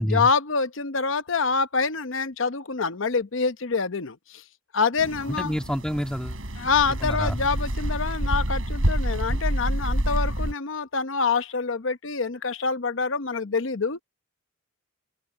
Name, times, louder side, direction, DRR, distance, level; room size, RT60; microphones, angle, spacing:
voice 1, 0.0-4.4 4.7-5.5 6.6-14.0, left 4 dB, 70° left, 0.9 m, -26 dB
sound 1, 5.0-10.5, right 1 dB, 85° right, 4.3 m, -27 dB
voice 2, 5.3-6.4 7.0-7.4, equal, 5° left, 1.8 m, -28 dB
open air
head